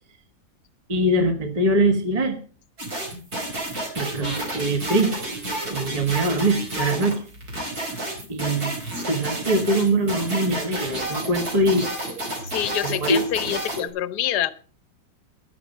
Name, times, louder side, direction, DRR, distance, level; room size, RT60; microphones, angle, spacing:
voice 1, 0.9-2.4 3.9-5.1 5.7-7.2 8.3-8.7 9.1-11.9 12.8-13.2, right 1 dB, 25° right, 7 dB, 1.4 m, -22 dB
sound 1, 2.8-13.9, right 1 dB, 65° right, 5.2 m, -30 dB
voice 2, 12.4-14.5, left 12 dB, 80° left, 16 dB, 1.4 m, -26 dB
14.5 x 11.0 x 5.4 m, 0.39 s
omnidirectional pair, 1.7 m